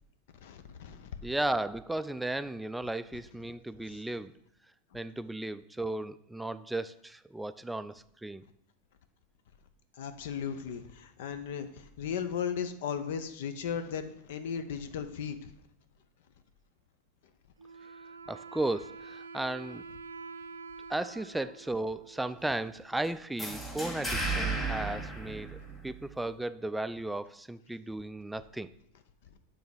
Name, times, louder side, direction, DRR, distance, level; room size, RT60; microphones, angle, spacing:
voice 1, 0.4-1.1 3.9-4.0 10.0-15.5, left 7 dB, 65° left, 0.6 m, -36 dB
voice 2, 1.2-4.3 4.9-8.4 18.3-19.8 20.9-25.6 25.8-28.7, right 2 dB, 5° right, 0.3 m, -35 dB
Wind instrument woodwind instrument, 17.6-23.1, right 4 dB, 85° right, 0.3 m, -47 dB
sound 1, 23.4-26.1, right 2 dB, 10° left, 1.9 m, -34 dB
7.9 x 3.5 x 5.0 m
hypercardioid pair, 90°, 0 cm